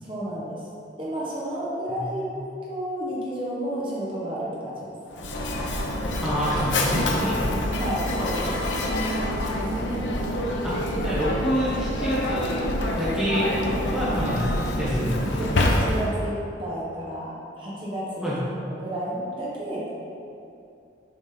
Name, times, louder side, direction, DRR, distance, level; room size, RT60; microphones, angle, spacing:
voice 1, 0.0-0.6 1.0-4.8 7.8-8.5 15.4-18.3 18.7-19.8, right 1 dB, 30° right, -7 dB, 1.3 m, -31 dB
voice 2, 1.9-2.3 6.2-7.7 9.5-10.4 10.6-12.6 12.9-13.5 13.9-14.5 14.8-15.4 18.2-18.4, equal, 5° right, -10 dB, 1.1 m, -28 dB
Mechanisms, 5.1-16.3, left 1 dB, 80° left, 0.7 m, -26 dB
6.8 x 5.1 x 3.9 m, 2.7 s
head